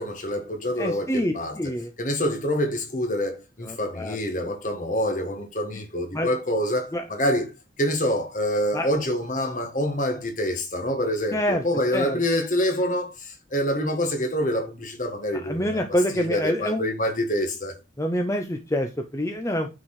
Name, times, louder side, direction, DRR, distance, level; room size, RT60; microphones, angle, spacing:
voice 1, 0.0-1.6 2.0-7.5 7.8-15.8 16.1-17.8, equal, 45° left, 1.6 m, -26 dB
voice 2, 0.8-1.9 3.6-4.2 6.1-6.3 6.9-7.0 8.7-8.9 11.3-11.6 11.9-12.2 15.4-16.8 18.0-19.7, equal, 15° left, 0.8 m, -26 dB
9.3 x 4.6 x 4.9 m
head